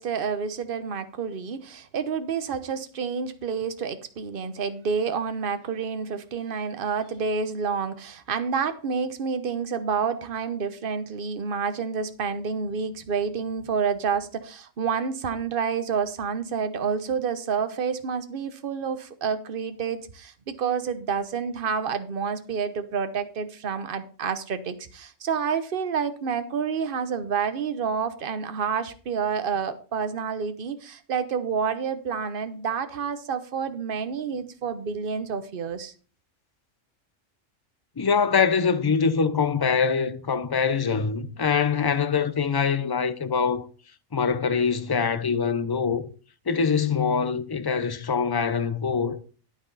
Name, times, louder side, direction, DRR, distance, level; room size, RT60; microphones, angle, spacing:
voice 1, 0.0-35.9, right 6 dB, 45° right, 1.1 m, -29 dB
voice 2, 38.0-43.6 44.1-46.0 46.5-49.2, left 6 dB, 30° left, 0.4 m, -24 dB
9.6 x 8.8 x 4.0 m
omnidirectional pair, 1.3 m